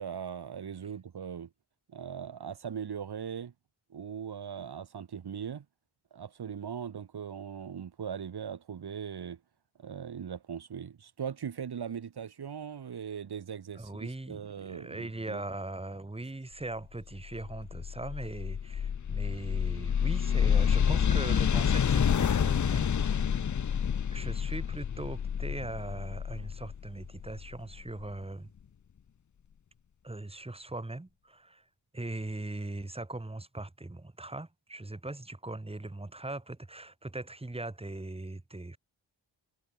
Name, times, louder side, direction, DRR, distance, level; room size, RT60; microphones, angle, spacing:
voice 1, 0.0-1.5 1.9-3.5 3.9-5.6 6.1-9.4 9.8-15.4, right 7 dB, 50° right, 1.1 m, -39 dB
voice 2, 13.7-23.4 24.1-28.5 30.0-31.6 31.9-38.8, right 2 dB, 10° right, 1.2 m, -40 dB
sound 1, 17.3-28.0, left 7 dB, 40° left, 0.7 m, -28 dB
cardioid pair, 45°, 49 cm